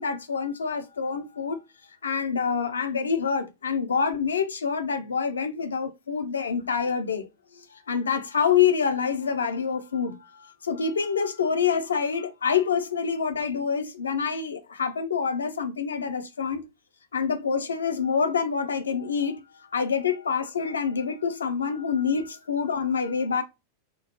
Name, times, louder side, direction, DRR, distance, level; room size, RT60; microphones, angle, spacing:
voice 1, 0.0-1.6 2.0-7.3 7.6-16.7 17.1-19.4 19.7-23.4, left 6 dB, 70° left, 0.5 m, -26 dB
4.3 x 2.0 x 2.9 m
figure-of-eight pair, 90°, 0 cm